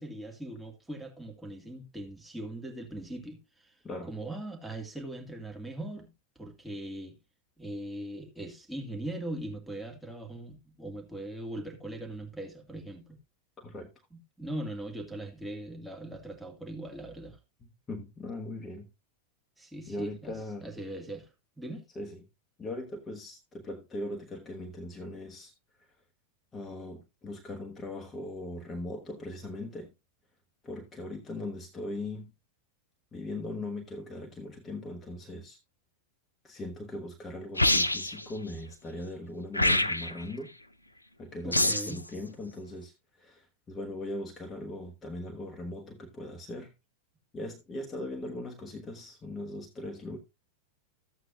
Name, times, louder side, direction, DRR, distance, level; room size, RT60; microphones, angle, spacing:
voice 1, 0.0-6.1 6.4-7.2 7.6-13.2 14.1-17.4 19.6-21.8 41.4-42.0, right 1 dB, 5° right, 1.9 m, -40 dB
voice 2, 13.6-13.9 17.9-18.9 19.9-20.7 21.9-22.2 22.6-25.5 26.5-29.9 30.6-32.3 33.1-35.6 36.4-40.5 41.2-46.7 47.3-50.2, left 1 dB, 20° left, 1.2 m, -39 dB
sound 1, 37.6-38.2 39.5-40.2 41.5-42.0, left 1 dB, 85° left, 0.5 m, -25 dB
13.5 x 8.0 x 2.5 m
figure-of-eight pair, 90°, 0 cm